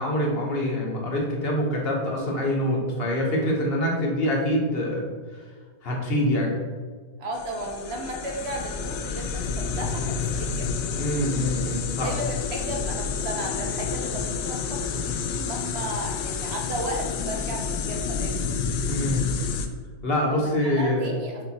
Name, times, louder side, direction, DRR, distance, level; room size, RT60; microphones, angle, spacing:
voice 1, 0.0-5.1 5.8-6.6 11.0-12.1 18.9-19.3 20.0-21.1, left 1 dB, 40° left, -1 dB, 1.1 m, -25 dB
voice 2, 7.2-11.4 12.0-18.5 20.2-21.4, right 1 dB, 50° right, 1 dB, 0.8 m, -35 dB
sound 1, 7.3-19.7, left 5 dB, 75° left, 1.2 m, -29 dB
5.4 x 4.5 x 4.1 m, 1.5 s
omnidirectional pair, 2.0 m